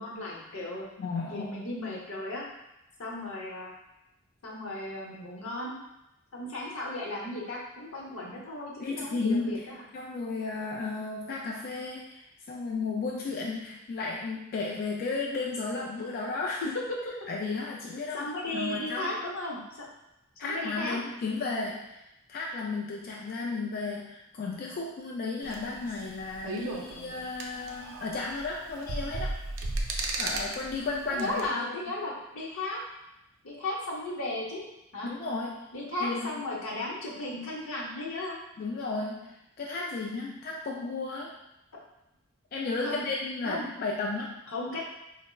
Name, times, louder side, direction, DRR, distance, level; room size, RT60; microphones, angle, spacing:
voice 1, 0.0-0.9 1.3-2.5 3.0-3.7 4.4-5.8 6.3-9.7 18.1-19.9 20.4-21.0 31.1-32.8 33.4-34.6 34.9-35.1 35.7-38.4 42.8-43.0 43.4-43.7 44.5-44.8, left 2 dB, 85° left, -3 dB, 0.8 m, -35 dB
voice 2, 1.0-1.5 8.8-9.7 9.9-16.8 17.3-19.2 20.4-22.0 22.3-29.4 30.2-31.7 35.0-35.7 36.0-36.3 38.6-41.4 42.5-44.4, left 3 dB, 45° left, -2 dB, 0.3 m, -34 dB
sound 1, 25.4-31.5, right 2 dB, 70° right, 0.4 m, -36 dB
4.2 x 2.0 x 2.2 m, 0.88 s
head